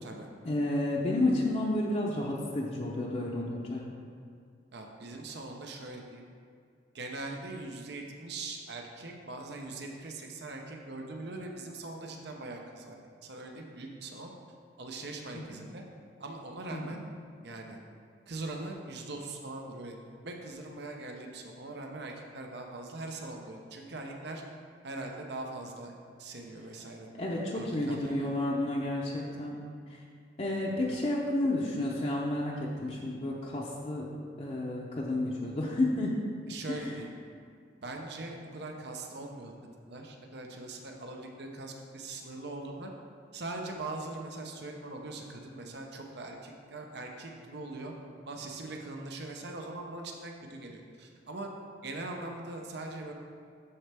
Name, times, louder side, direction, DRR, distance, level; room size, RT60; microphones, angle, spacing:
voice 1, 0.4-3.9 15.3-15.6 16.7-17.0 27.2-29.5 29.9-30.0 30.4-34.1 34.4-36.2 36.7-36.9, left 1 dB, 35° left, -4 dB, 0.7 m, -31 dB
voice 2, 4.7-6.2 6.9-13.0 13.2-14.3 14.8-15.8 16.2-17.0 17.4-17.8 18.3-20.0 20.2-24.4 24.8-25.9 26.2-28.3 30.8-31.0 36.5-37.1 37.8-39.5 39.9-42.9 43.3-47.9 48.3-51.5 51.8-53.1, right 2 dB, 65° right, 2 dB, 0.8 m, -41 dB
12.5 x 4.3 x 3.4 m, 2.2 s
head